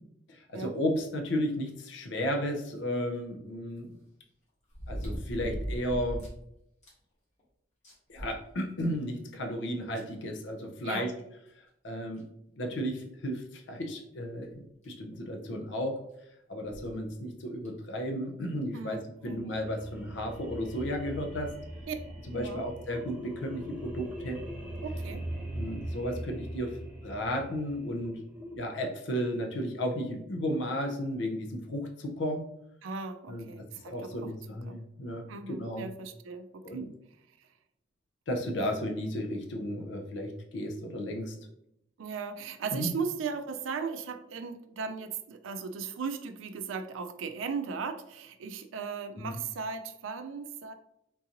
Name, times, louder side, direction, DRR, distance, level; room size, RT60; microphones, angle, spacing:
voice 1, 0.3-4.0 4.9-6.2 8.1-11.1 11.8-12.3 12.5-16.0 16.5-19.0 19.2-21.5 22.3-24.4 25.5-26.8 27.0-28.2 28.5-32.5 33.3-33.4 33.9-35.9 36.6-36.9 38.3-41.3 42.7-42.9 49.2-49.4, equal, 65° left, 3 dB, 0.5 m, -34 dB
sound 1, 2.8-2.9 4.7-6.4 6.8-6.9 7.4-7.5 7.8-9.0 9.9-10.0 11.5-11.6 12.2-12.3 13.0-13.2 14.5-14.6 14.8-14.9 16.6-16.9 17.6-17.7, equal, 40° left, 1.2 m, -38 dB
voice 2, 18.7-19.4 21.9-22.0 22.3-22.6 24.8-25.2 32.8-34.3 34.7-34.8 35.3-36.9 42.0-50.7, right 5 dB, 85° right, 8 dB, 0.4 m, -37 dB
sound 2, 19.1-28.6, right 1 dB, 5° right, 0.5 m, -41 dB
3.7 x 2.5 x 2.8 m, 0.78 s
head